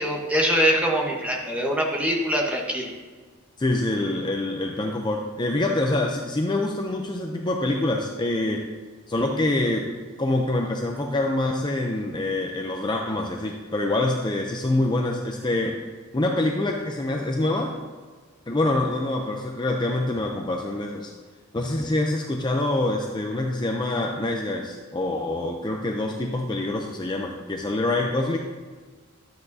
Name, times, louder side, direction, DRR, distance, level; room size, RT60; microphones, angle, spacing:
voice 1, 0.0-2.9, equal, 5° right, -1 dB, 1.1 m, -23 dB
voice 2, 3.6-8.7 9.1-15.8 16.1-17.7 18.5-21.1 21.5-28.4, left 2 dB, 20° left, 2 dB, 0.5 m, -25 dB
12.0 x 8.0 x 2.7 m, 1.5 s
head